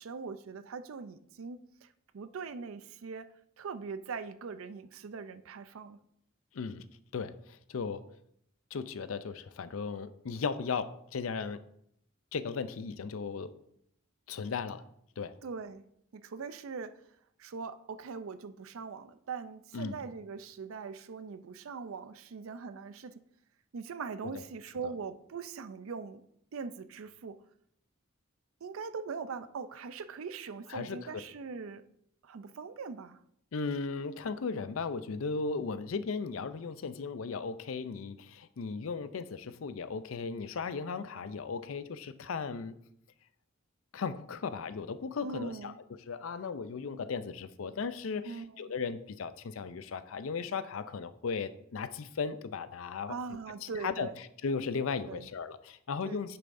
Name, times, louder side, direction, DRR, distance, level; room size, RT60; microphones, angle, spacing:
voice 1, 0.0-6.0 15.4-15.8 16.1-17.0 17.4-23.2 23.7-26.2 26.5-27.4 28.6-31.8 32.2-33.2 45.2-45.8 48.2-48.5 53.1-54.2 55.1-55.3 56.0-56.2, right 5 dB, 85° right, 12 dB, 0.5 m, -41 dB
voice 2, 7.1-8.0 8.7-11.6 12.3-13.5 14.3-14.8 15.2-15.3 19.7-20.0 24.3-24.4 24.8-24.9 30.7-31.1 33.5-42.7 43.9-45.7 46.1-53.1 53.8-54.1 54.4-56.4, left 5 dB, 80° left, 13 dB, 0.5 m, -36 dB
8.9 x 6.7 x 2.6 m, 0.72 s
head